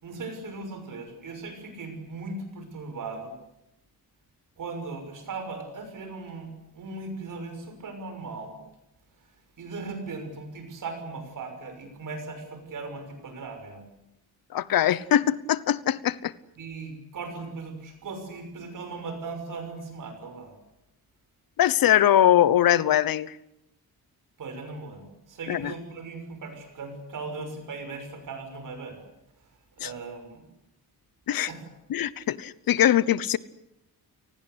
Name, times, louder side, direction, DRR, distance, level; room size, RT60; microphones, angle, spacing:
voice 1, 0.0-3.4 4.6-8.6 9.6-13.8 16.5-20.5 24.4-29.0 29.8-30.4 31.5-31.7, right 3 dB, 55° right, 8 dB, 6.2 m, -38 dB
voice 2, 14.5-16.3 21.6-23.3 25.5-25.7 29.8-29.9 31.3-31.5 31.9-33.4, left 11 dB, 65° left, 18 dB, 1.0 m, -22 dB
29.5 x 19.5 x 8.2 m, 0.85 s
wide cardioid pair, 180°, 37 cm